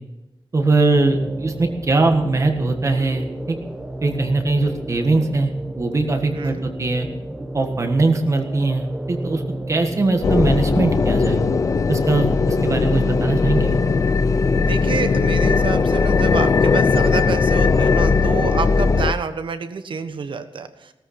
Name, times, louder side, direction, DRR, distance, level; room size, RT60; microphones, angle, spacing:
voice 1, 0.5-3.6 4.0-5.5 5.8-7.1 7.5-9.4 9.7-11.4 11.9-13.7, right 3 dB, 35° right, 5 dB, 1.5 m, -20 dB
sound 1, 0.9-14.1, right 1 dB, 10° right, 1.0 m, -33 dB
voice 2, 6.3-6.6 14.5-20.9, right 5 dB, 65° right, 9 dB, 1.2 m, -28 dB
sound 2, 10.2-19.1, left 4 dB, 40° left, 0.5 m, -18 dB
18.0 x 14.0 x 4.3 m, 0.96 s
wide cardioid pair, 170°, 9 cm